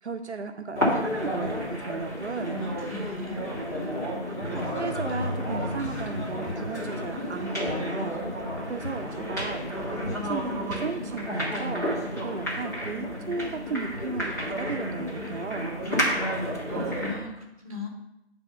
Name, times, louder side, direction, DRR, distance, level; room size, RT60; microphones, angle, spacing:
voice 1, 0.0-2.6 4.2-8.4 8.7-9.6 10.0-15.8, right 4 dB, 75° right, 5 dB, 0.7 m, -35 dB
sound 1, 0.7-17.2, equal, 15° left, 1.3 m, -31 dB
voice 2, 2.2-3.4 16.2-17.9, left 2 dB, 30° right, 1 dB, 1.4 m, -40 dB
sound 2, 4.4-6.8 7.7-8.0 8.8-9.4 10.1-10.8, left 1 dB, 70° left, 0.9 m, -37 dB
8.2 x 3.5 x 5.5 m, 0.87 s
figure-of-eight pair, 170°, 34 cm